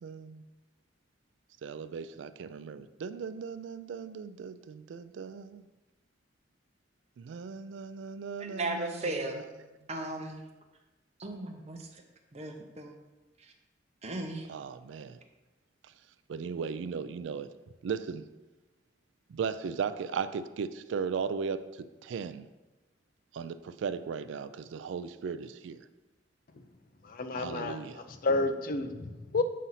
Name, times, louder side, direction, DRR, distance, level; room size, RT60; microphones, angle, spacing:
voice 1, 0.0-0.4 1.6-5.6 7.2-9.4 14.5-15.2 16.3-17.5 17.8-18.2 19.3-22.4 23.3-25.8 27.4-28.0, right 6 dB, 80° right, 12 dB, 0.3 m, -37 dB
voice 2, 8.4-9.4 9.9-10.4 11.2-11.9 12.3-12.9 14.0-14.5, right 2 dB, 35° right, 3 dB, 0.7 m, -36 dB
voice 3, 27.1-27.8 28.2-29.4, left 3 dB, 50° left, 8 dB, 0.5 m, -30 dB
7.4 x 2.7 x 5.6 m, 1.1 s
head